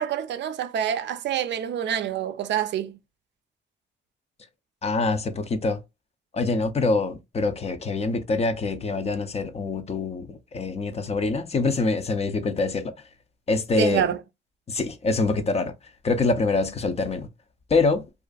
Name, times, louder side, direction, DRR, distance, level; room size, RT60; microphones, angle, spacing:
voice 1, 0.0-3.0 13.8-14.2, right 9 dB, 65° right, 0.4 m, -26 dB
voice 2, 4.8-5.8 6.3-12.9 13.5-14.0 14.7-15.7 16.0-17.3 17.7-18.1, left 3 dB, 30° left, 0.5 m, -25 dB
2.4 x 2.4 x 2.3 m
cardioid pair, 90°, 20 cm